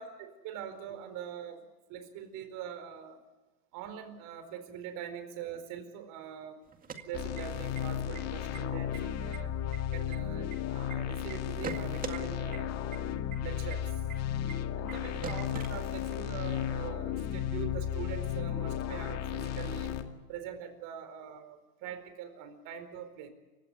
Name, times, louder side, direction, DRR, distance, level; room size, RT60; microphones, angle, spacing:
voice 1, 0.0-1.6 1.9-3.2 3.7-6.6 7.0-9.5 9.9-12.7 13.4-14.0 14.8-20.0 20.3-23.3, right 8 dB, 40° right, 9 dB, 4.6 m, -43 dB
sound 1, 6.7-7.8 8.1-8.2 8.5-9.0 9.3-10.9 11.3-12.2 12.5-12.6 12.9-13.0 13.3-13.4 13.7-13.8 14.1-14.2 14.5-14.6 14.9-15.0 15.2-16.3, right 7 dB, 20° right, 2.0 m, -41 dB
sound 2, 7.1-20.0, left 9 dB, 35° left, 2.1 m, -34 dB
28.5 x 16.5 x 8.2 m, 1.1 s
hypercardioid pair, 130°, 46 cm